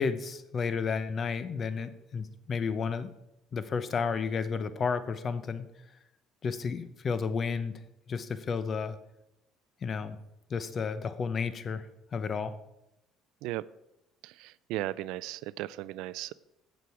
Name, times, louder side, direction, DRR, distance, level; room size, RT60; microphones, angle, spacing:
voice 1, 0.0-3.1 3.5-5.7 6.4-7.8 8.1-9.0 9.8-10.2 10.5-11.9 12.1-12.6, left 5 dB, 35° left, 13 dB, 0.7 m, -32 dB
voice 2, 14.2-16.3, right 16 dB, 80° right, 19 dB, 0.3 m, -36 dB
15.5 x 6.1 x 4.7 m, 0.90 s
cardioid pair, 140°, 0 cm